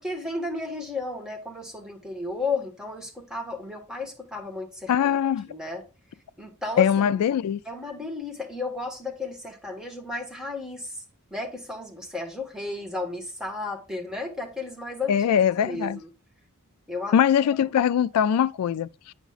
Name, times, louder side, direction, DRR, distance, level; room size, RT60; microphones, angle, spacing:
voice 1, 0.0-5.1 5.5-5.8 6.4-7.1 7.6-11.0 11.3-16.1 16.9-17.2 17.5-17.6, left 3 dB, 5° right, 1.4 m, -33 dB
voice 2, 4.9-5.5 6.8-7.6 15.1-16.0 17.1-19.1, left 8 dB, 80° left, 0.3 m, -22 dB
9.0 x 5.1 x 2.4 m
head